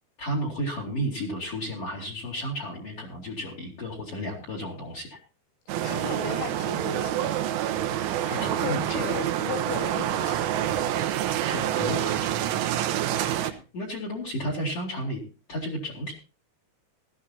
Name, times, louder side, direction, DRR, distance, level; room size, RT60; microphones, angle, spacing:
voice 1, 0.2-5.2 8.3-9.0 11.4-12.8 13.3-15.2 15.5-16.1, equal, 40° left, 0 dB, 3.0 m, -33 dB
sound 1, 5.7-13.5, right 11 dB, 85° right, 3.5 m, -27 dB
voice 2, 5.8-7.4 8.3-10.5, left 5 dB, 80° left, 2 dB, 5.8 m, -35 dB
18.5 x 13.5 x 2.8 m, 0.35 s
omnidirectional pair, 5.4 m